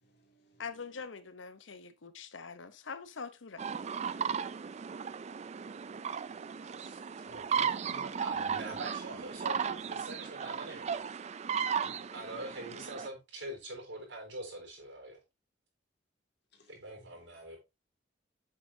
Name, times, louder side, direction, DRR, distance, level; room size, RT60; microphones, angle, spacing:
voice 1, 0.0-0.7 6.2-7.2 11.8-12.1 16.5-17.1, equal, 60° left, 2.2 m, -66 dB
voice 2, 0.6-3.6, left 5 dB, 85° left, 0.8 m, -44 dB
sound 1, 3.6-13.1, right 7 dB, 35° right, 0.4 m, -36 dB
voice 3, 7.3-11.1 12.0-15.2 16.7-17.6, right 2 dB, 75° right, 3.6 m, -44 dB
7.7 x 6.4 x 2.7 m
head